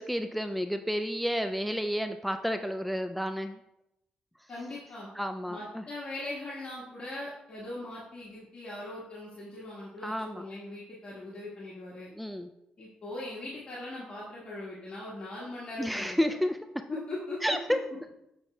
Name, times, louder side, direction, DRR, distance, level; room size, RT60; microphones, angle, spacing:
voice 1, 0.0-3.6 4.4-4.5 5.2-5.8 10.0-10.4 12.1-12.5 15.8-16.9 17.4-17.8, equal, ahead, 7 dB, 0.3 m, -31 dB
voice 2, 4.5-5.1 5.5-12.1 12.8-16.3 16.9-17.6, left 2 dB, 45° left, -7 dB, 1.5 m, -40 dB
7.0 x 6.0 x 2.2 m, 0.85 s
cardioid pair, 85°, 3 cm